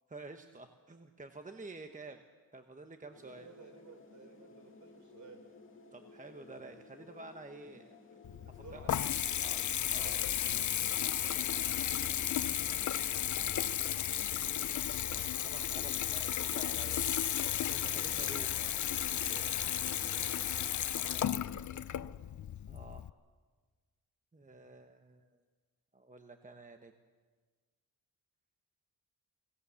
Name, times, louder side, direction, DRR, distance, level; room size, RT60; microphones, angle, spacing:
voice 1, 0.1-2.2 2.5-3.5 5.9-8.0 8.5-8.9 9.4-9.6 9.9-10.3 14.8-17.4 17.6-18.6 21.1-21.2 22.7-23.1 24.3-25.4 25.9-26.9, right 3 dB, 20° right, 6 dB, 1.0 m, -50 dB
voice 2, 3.0-5.4 8.4-9.7 10.0-10.7 11.2-12.3 17.9-18.7 19.1-20.3 20.8-22.2, right 4 dB, 50° right, 6 dB, 3.8 m, -56 dB
sound 1, 3.1-20.7, left 4 dB, 35° left, 2.2 m, -55 dB
Water tap faucet / Bathtub (filling or washing) / Trickle dribble, 8.2-23.1, left 10 dB, 55° left, 0.5 m, -34 dB
24.5 x 17.0 x 7.0 m, 1.4 s
wide cardioid pair, 120°, 37 cm